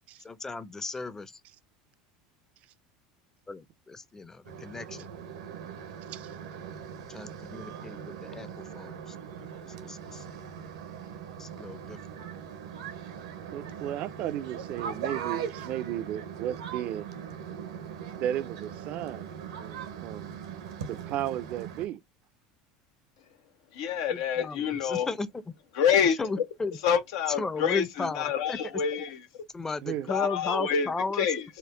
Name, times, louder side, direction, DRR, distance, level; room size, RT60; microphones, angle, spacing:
voice 1, 0.2-1.4 3.5-5.1 7.1-9.2 9.6-10.3 11.4-12.0 24.1-25.5 26.2-26.8 27.4-28.6 29.5-31.3, left 3 dB, 15° left, 0.6 m, -35 dB
sound 1, 4.4-21.9, right 8 dB, 85° right, 1.0 m, -40 dB
voice 2, 13.5-17.1 18.2-20.4 20.9-22.0 29.8-30.1, right 11 dB, 55° right, 0.5 m, -34 dB
voice 3, 23.7-25.1 25.7-26.2 26.8-29.4 30.1-30.9 31.2-31.4, left 7 dB, 75° left, 0.7 m, -27 dB
4.4 x 2.1 x 3.8 m
hypercardioid pair, 95°, 3 cm